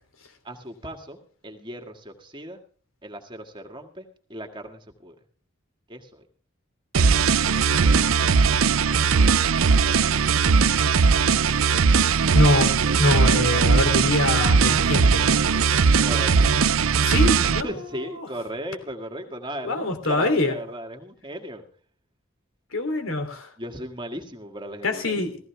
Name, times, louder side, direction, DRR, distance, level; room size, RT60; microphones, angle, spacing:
voice 1, 0.4-1.2 1.4-2.6 3.0-5.2 5.9-6.2 16.0-16.5 17.4-21.6 23.6-25.2, right 1 dB, 25° right, 4 dB, 2.0 m, -36 dB
sound 1, 6.9-17.6, right 5 dB, 90° right, 0.6 m, -19 dB
voice 2, 12.3-15.2 17.0-17.7 19.6-20.6 22.7-23.5 24.8-25.4, left 2 dB, 85° left, 6 dB, 3.2 m, -24 dB
16.0 x 15.5 x 3.5 m, 0.43 s
head